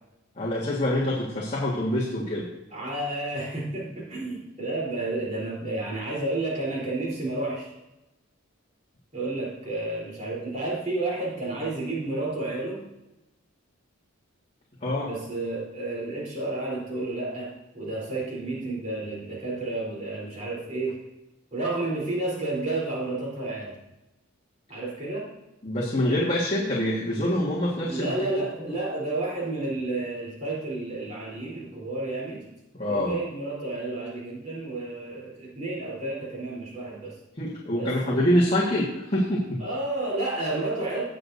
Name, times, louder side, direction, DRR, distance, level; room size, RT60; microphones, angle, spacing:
voice 1, 0.4-2.5 14.8-15.1 25.6-28.7 32.7-33.1 37.4-39.6, left 1 dB, 30° left, -6 dB, 1.6 m, -26 dB
voice 2, 2.7-7.7 9.1-12.9 15.0-21.0 21.5-23.8 24.7-25.3 27.8-32.5 32.9-37.2 37.7-38.2 39.6-41.0, right 2 dB, 35° right, -6 dB, 3.7 m, -31 dB
17.0 x 6.5 x 2.7 m, 0.96 s
head